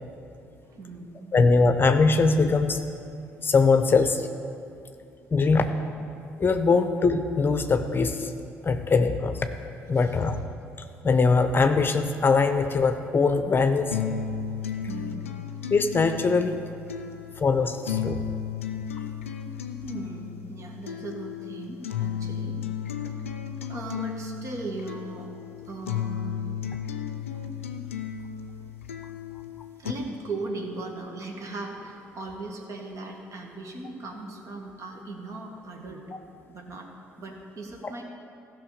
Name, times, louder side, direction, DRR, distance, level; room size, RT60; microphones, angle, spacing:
voice 1, 0.6-1.4 4.9-5.0 9.9-10.2 14.9-15.3 19.8-22.6 22.9-23.2 23.7-25.3 25.6-26.4 29.8-36.1 36.5-36.9 37.2-38.0, right 2 dB, 50° right, 1 dB, 1.8 m, -38 dB
voice 2, 1.3-2.8 3.4-4.3 5.3-5.7 6.4-8.3 8.6-9.5 9.9-10.4 11.0-14.0 15.7-16.6 17.4-18.2, left 4 dB, 30° left, 8 dB, 0.7 m, -22 dB
sound 1, 13.9-29.9, left 8 dB, 90° left, 0.5 m, -34 dB
15.5 x 5.8 x 5.1 m, 2.5 s
hypercardioid pair, 55°, 7 cm